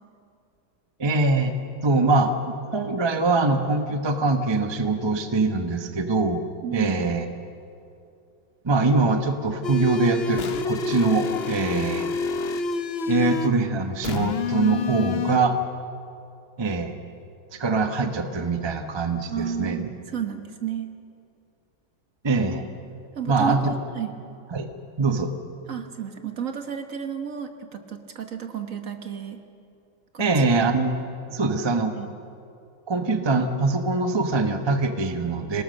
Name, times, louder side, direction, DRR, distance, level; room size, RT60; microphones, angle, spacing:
voice 1, 1.0-1.5 1.8-6.4 6.7-7.2 8.6-12.1 13.1-15.6 16.6-17.0 17.5-19.8 22.2-22.7 23.3-23.7 24.5-24.7 25.0-25.3 30.2-30.9 31.3-31.9 32.9-35.6, right 3 dB, 25° right, 6 dB, 0.6 m, -23 dB
voice 2, 6.6-7.1 19.3-20.9 23.1-24.1 25.7-29.4 30.1-30.5 31.9-32.1, right 7 dB, 45° right, 6 dB, 1.5 m, -32 dB
sound 1, 9.6-13.6 14.0-15.4, left 4 dB, 85° left, 0.5 m, -28 dB
26.5 x 18.0 x 6.6 m, 2.5 s
omnidirectional pair, 2.2 m